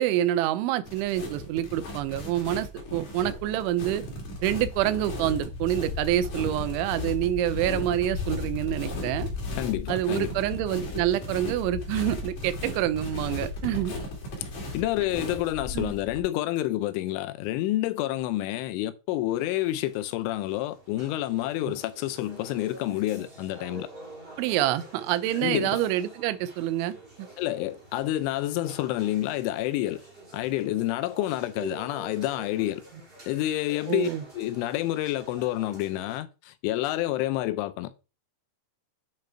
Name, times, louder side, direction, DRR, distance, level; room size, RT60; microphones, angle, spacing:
voice 1, 0.0-4.0 4.4-9.3 9.9-14.0 15.7-15.9 24.4-27.3 33.9-34.2, right 13 dB, 80° right, 3.0 m, -27 dB
sound 1, 0.8-16.2, left 3 dB, 45° left, 3.3 m, -35 dB
voice 2, 9.6-10.3 13.7-13.8 14.7-23.9 25.4-25.8 27.4-30.0 30.3-32.8 33.3-34.1 34.3-37.9, left 15 dB, 85° left, 3.1 m, -28 dB
sound 2, 19.3-36.2, right 2 dB, 15° right, 2.6 m, -47 dB
9.3 x 5.2 x 4.5 m
omnidirectional pair, 5.6 m